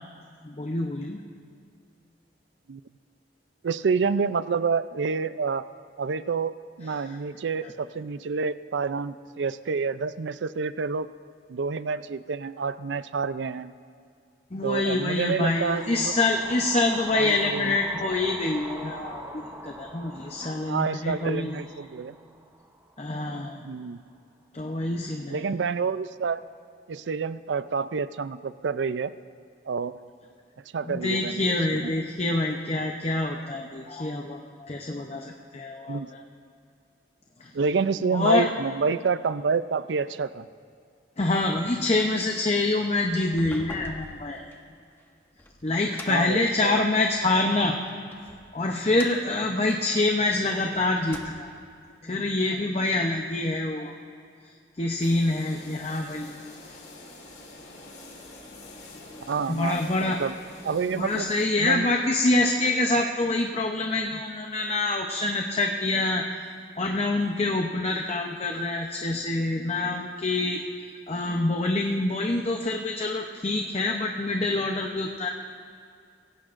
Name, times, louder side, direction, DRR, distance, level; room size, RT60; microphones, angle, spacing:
voice 1, 0.4-1.2 6.8-7.2 7.6-7.7 14.5-21.5 23.0-23.6 24.5-25.4 30.8-36.2 37.4-37.5 38.1-38.5 41.2-44.4 45.6-47.8 48.5-51.5 52.0-53.9 54.8-56.3 59.5-60.2 60.9-66.2 66.8-70.6 71.1-75.3, left 2 dB, 35° left, 2 dB, 0.7 m, -26 dB
voice 2, 3.6-5.6 6.0-11.1 11.5-13.7 14.6-16.1 17.1-17.8 20.7-22.2 23.5-24.0 25.3-26.4 26.9-29.1 29.7-30.0 30.7-31.9 35.9-36.1 37.5-40.5 46.1-46.8 59.3-60.3 60.6-61.3 61.6-61.9, right 5 dB, 90° right, 14 dB, 0.4 m, -28 dB
sound 1, 15.3-23.5, right 2 dB, 15° right, 0.8 m, -43 dB
sound 2, 43.2-47.3 47.9-50.6 50.9-51.7, left 1 dB, 15° left, 1.1 m, -45 dB
sound 3, 55.0-61.5, left 2 dB, 65° left, 2.9 m, -46 dB
24.5 x 17.0 x 2.6 m, 2.4 s
head